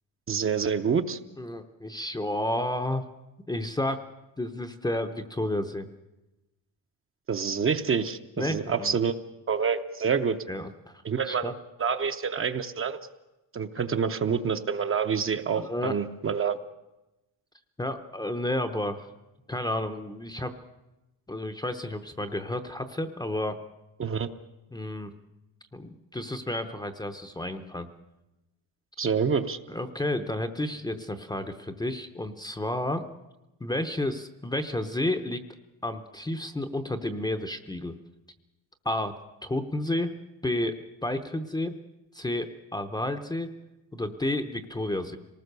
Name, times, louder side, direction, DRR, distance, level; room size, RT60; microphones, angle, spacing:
voice 1, 0.3-1.2 7.3-9.1 9.5-10.4 11.0-11.5 11.8-13.0 13.5-16.6 24.0-24.3 29.0-29.6, right 6 dB, 30° right, 8 dB, 0.7 m, -27 dB
voice 2, 1.4-3.1 3.5-4.0 4.4-5.9 8.4-9.0 10.5-11.5 15.6-15.9 17.8-19.1 19.5-20.5 21.3-23.6 24.7-25.1 25.7-27.9 29.7-33.0 33.6-35.4 35.8-38.0 38.8-39.1 39.4-40.1 40.4-41.7 42.1-43.5 43.9-45.2, left 1 dB, 10° left, 7 dB, 0.7 m, -31 dB
26.5 x 19.0 x 6.7 m, 1.0 s
cardioid pair, 180°, 46 cm